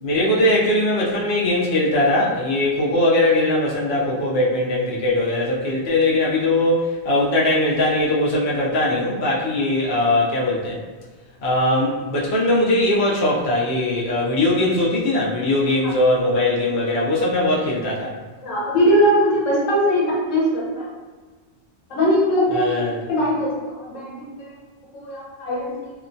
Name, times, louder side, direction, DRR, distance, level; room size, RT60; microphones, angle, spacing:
voice 1, 0.0-10.8 11.4-18.1 22.5-23.0, left 1 dB, 60° left, -6 dB, 0.8 m, -20 dB
voice 2, 18.4-20.9 21.9-22.8 23.1-24.6 24.9-25.9, equal, 85° left, -5 dB, 1.1 m, -21 dB
2.9 x 2.1 x 2.5 m, 1.3 s
omnidirectional pair, 1.3 m